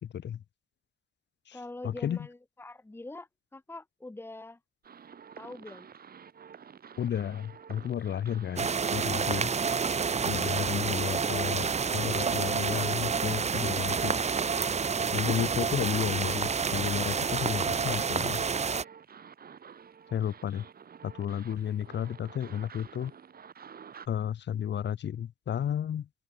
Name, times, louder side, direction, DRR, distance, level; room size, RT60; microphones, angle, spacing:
voice 1, 0.0-0.4 1.5-2.2 7.0-9.5 10.2-14.2 15.1-18.4 20.1-20.6 21.0-23.1 24.1-26.1, left 9 dB, 60° left, 4.4 m, -32 dB
voice 2, 1.5-4.6 5.4-5.9, left 2 dB, 10° left, 1.6 m, -44 dB
sound 1, 4.8-24.1, right 7 dB, 50° right, 6.2 m, -50 dB
sound 2, 8.6-18.8, right 5 dB, 35° right, 1.4 m, -29 dB
open air
cardioid pair, 90°, 20 cm